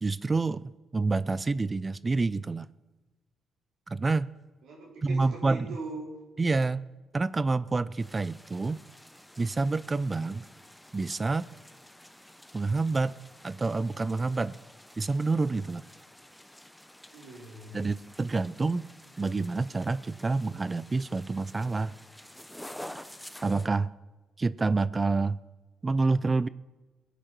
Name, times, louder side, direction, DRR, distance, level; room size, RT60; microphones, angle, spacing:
voice 1, 0.0-2.7 3.9-4.3 5.0-5.7 6.4-6.8 7.1-8.8 9.4-10.4 10.9-11.5 12.5-13.1 13.4-14.6 15.0-15.8 17.7-18.8 19.2-21.9 23.4-23.9 24.4-25.4 25.8-26.5, right 3 dB, 25° right, 18 dB, 0.4 m, -28 dB
voice 2, 4.6-6.2 17.1-17.8, right 2 dB, 80° right, -4 dB, 4.1 m, -41 dB
sound 1, 8.0-23.7, left 1 dB, 5° left, 0.7 m, -50 dB
17.5 x 8.3 x 6.0 m, 1.2 s
cardioid pair, 90°, 0 cm